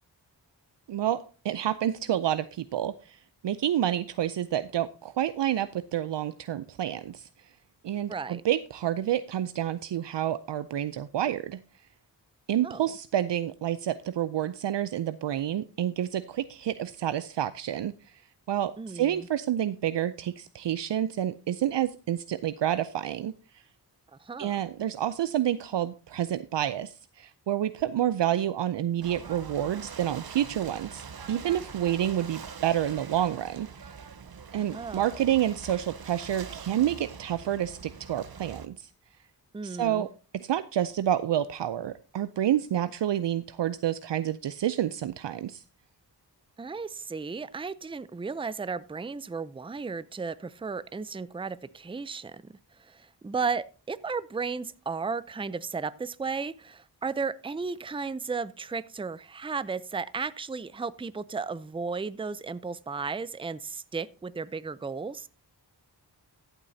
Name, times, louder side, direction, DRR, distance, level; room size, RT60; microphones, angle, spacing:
voice 1, 0.9-3.2 3.4-7.3 7.8-11.6 12.5-17.9 18.5-23.3 24.4-34.0 34.5-38.9 39.6-40.1 40.3-45.6, right 11 dB, 70° right, 13 dB, 0.5 m, -29 dB
voice 2, 8.1-8.4 12.6-12.9 18.8-19.3 24.2-24.5 34.5-35.2 39.5-40.1 46.6-52.4 52.8-65.3, right 4 dB, 10° right, 16 dB, 0.5 m, -34 dB
Ocean / Boat Water vehicle, 29.0-38.7, right 6 dB, 55° right, 0.9 m, -44 dB
14.5 x 8.2 x 2.7 m, 0.36 s
cardioid pair, 50°, 44 cm